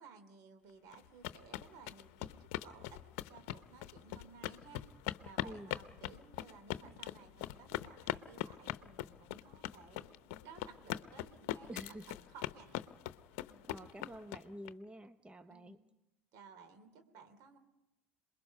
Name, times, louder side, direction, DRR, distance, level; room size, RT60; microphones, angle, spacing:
voice 1, 0.0-3.0 3.3-10.2 10.4-12.8 13.4-13.7 15.5-15.8 16.3-17.6, right 5 dB, 60° right, 8 dB, 3.2 m, -57 dB
sound 1, 0.9-14.7, left 14 dB, 65° left, 0.8 m, -41 dB
voice 2, 11.7-12.1 13.7-15.8, right 1 dB, 15° right, 10 dB, 1.0 m, -49 dB
27.5 x 21.5 x 5.5 m, 0.97 s
hypercardioid pair, 70°, 7 cm